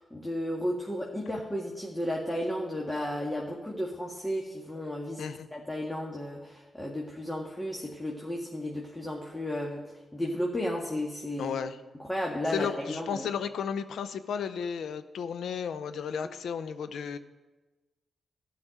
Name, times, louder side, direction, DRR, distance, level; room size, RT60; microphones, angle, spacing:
voice 1, 0.1-9.8 10.1-11.6 12.1-13.3, left 1 dB, 15° left, -2 dB, 1.9 m, -33 dB
voice 2, 11.4-11.8 12.5-17.2, left 7 dB, 80° left, 12 dB, 0.7 m, -33 dB
12.0 x 5.9 x 9.2 m, 1.2 s
cardioid pair, 60°, 0 cm